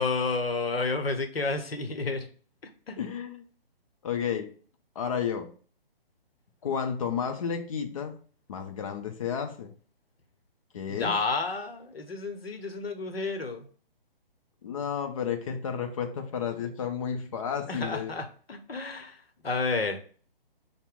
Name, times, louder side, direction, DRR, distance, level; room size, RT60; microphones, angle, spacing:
voice 1, 0.0-2.3 2.9-3.0 10.9-13.7 17.7-19.2 19.4-20.0, left 3 dB, 80° left, 7 dB, 0.8 m, -30 dB
voice 2, 3.0-3.4 4.0-4.5 5.0-5.5 6.6-8.2 8.5-9.7 10.7-11.2 14.6-18.1, left 7 dB, 35° left, 5 dB, 0.6 m, -32 dB
5.5 x 2.1 x 3.5 m, 0.43 s
figure-of-eight pair, 145°, 29 cm